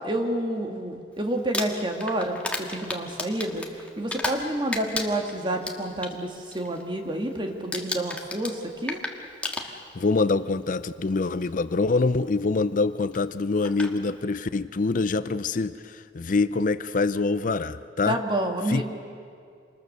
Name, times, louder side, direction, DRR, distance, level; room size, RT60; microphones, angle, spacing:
voice 1, 0.0-9.0 18.0-18.8, right 1 dB, 30° right, 3 dB, 2.0 m, -29 dB
Crumpling crinkling, 1.4-4.5 4.7-6.1 6.5-6.8 7.1-7.4 7.7-10.1 11.0-11.1 13.1-13.2 13.6-13.9, left 2 dB, 10° left, 1.6 m, -33 dB
voice 2, 9.6-18.2 18.7-18.8, left 3 dB, 50° left, 14 dB, 0.5 m, -25 dB
27.0 x 21.0 x 6.7 m, 2.4 s
head